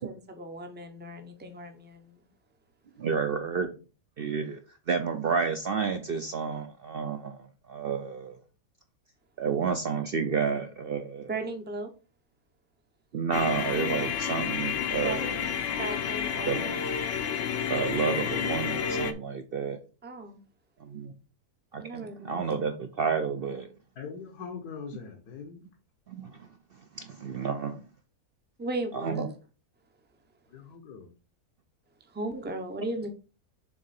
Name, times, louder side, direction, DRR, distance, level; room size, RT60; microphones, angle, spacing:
voice 1, 0.0-2.3 11.3-11.9 15.0-15.2 15.8-16.7 20.0-20.4 21.8-22.5 28.6-29.3 32.1-33.1, right 2 dB, 10° right, 0.5 m, -36 dB
voice 2, 3.0-3.7 4.2-4.6 4.9-8.4 9.4-11.3 13.1-15.4 16.5-16.6 17.7-19.8 20.8-21.1 21.7-23.7 26.1-26.5 27.0-27.8 28.9-29.3, right 5 dB, 65° right, 0.5 m, -30 dB
sound 1, 13.3-19.1, left 8 dB, 60° left, 0.9 m, -30 dB
voice 3, 24.0-25.6 30.5-31.1, left 6 dB, 75° left, 1.5 m, -41 dB
7.2 x 3.7 x 4.1 m
omnidirectional pair, 1.7 m